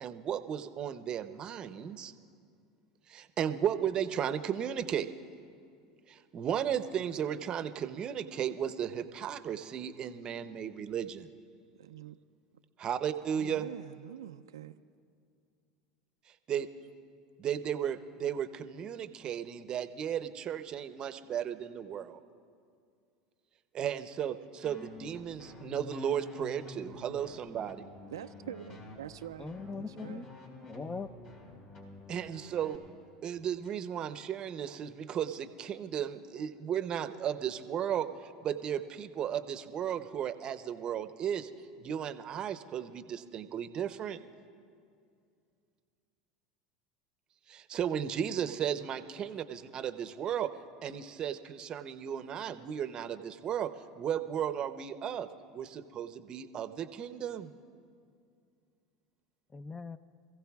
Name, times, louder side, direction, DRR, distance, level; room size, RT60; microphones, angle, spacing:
voice 1, 0.0-2.1 3.1-5.1 6.1-11.3 12.8-13.7 16.5-16.7 17.4-22.2 23.7-27.9 32.1-32.8 33.2-41.5 41.8-44.2 47.5-50.5 50.8-55.3 55.5-57.5, right 9 dB, 40° right, 11 dB, 0.7 m, -35 dB
voice 2, 11.8-12.2 13.3-14.8 28.1-30.3, right 10 dB, 90° right, 11 dB, 0.4 m, -45 dB
sound 1, 24.6-32.8, left 2 dB, 50° left, 3.8 m, -50 dB
voice 3, 29.4-30.3 30.6-31.1 59.5-60.0, left 4 dB, 20° left, 13 dB, 0.6 m, -40 dB
26.0 x 15.5 x 2.4 m, 2.3 s
hypercardioid pair, 90°, 2 cm